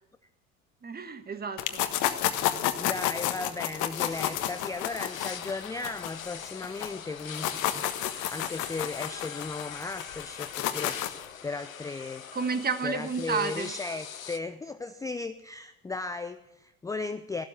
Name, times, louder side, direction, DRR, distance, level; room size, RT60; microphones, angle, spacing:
voice 1, 0.8-1.8 12.3-13.7, right 5 dB, 25° right, 10 dB, 1.6 m, -31 dB
sound 1, 1.6-6.9 7.2-11.3, left 12 dB, 50° left, 1.3 m, -31 dB
voice 2, 2.8-12.2 12.8-17.5, left 3 dB, 10° left, 10 dB, 0.6 m, -36 dB
sound 2, 4.0-14.4, left 8 dB, 90° left, 0.8 m, -42 dB
15.5 x 12.5 x 7.3 m, 0.92 s
figure-of-eight pair, 70°, 39 cm